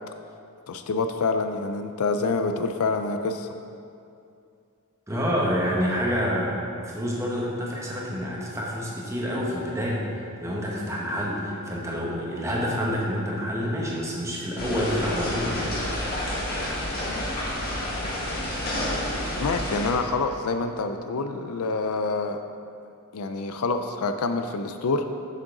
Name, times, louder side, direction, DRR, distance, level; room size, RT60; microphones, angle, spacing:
voice 1, 0.7-3.5 17.1-17.2 19.4-22.4 23.1-25.1, left 3 dB, 70° left, 7 dB, 0.4 m, -27 dB
voice 2, 5.1-15.8, equal, 15° right, -4 dB, 1.3 m, -28 dB
sound 1, 14.6-19.9, left 1 dB, 45° left, 1.6 m, -29 dB
7.7 x 7.3 x 3.8 m, 2.5 s
head